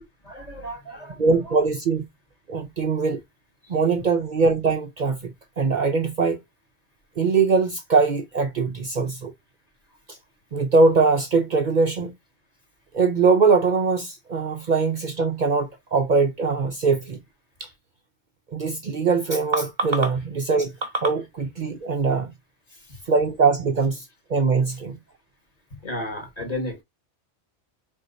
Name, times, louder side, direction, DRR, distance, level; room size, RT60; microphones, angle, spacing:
voice 1, 0.2-1.6 3.6-3.7 22.7-23.0 25.7-26.8, left 1 dB, 35° left, 1.7 m, -34 dB
voice 2, 1.2-2.0 2.5-3.2 3.7-5.3 5.6-6.4 7.2-9.3 10.1-10.2 10.5-12.1 12.9-17.2 17.6-17.7 18.5-22.3 23.1-24.0 24.3-25.0, right 4 dB, 50° right, 0.7 m, -22 dB
4.5 x 3.6 x 2.6 m
omnidirectional pair, 1.1 m